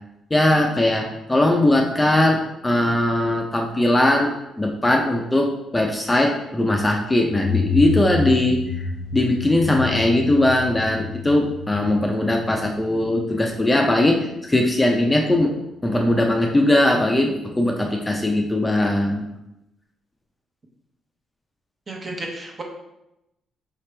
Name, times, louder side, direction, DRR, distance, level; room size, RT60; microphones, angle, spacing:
voice 1, 0.3-8.6 9.1-15.5 15.8-19.2, left 1 dB, 15° left, 1 dB, 0.5 m, -20 dB
sound 1, 7.3-13.8, left 4 dB, 65° left, 0.7 m, -29 dB
voice 2, 21.9-22.6, right 2 dB, 35° right, 1 dB, 1.0 m, -32 dB
4.9 x 2.9 x 3.3 m, 0.88 s
cardioid pair, 90°, 0 cm